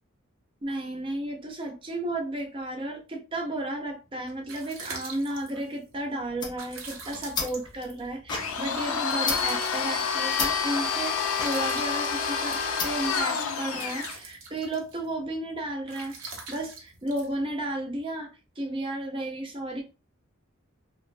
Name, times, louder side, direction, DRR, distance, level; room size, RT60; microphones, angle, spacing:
voice 1, 0.6-18.3 18.6-19.8, right 1 dB, 25° right, 0.6 m, -33 dB
sound 1, 4.0-18.0, right 4 dB, 70° right, 0.7 m, -45 dB
sound 2, 6.2-13.2, left 4 dB, 20° left, 0.3 m, -36 dB
Domestic sounds home sounds, 8.3-14.2, left 6 dB, 85° left, 0.5 m, -28 dB
3.0 x 2.1 x 2.5 m
head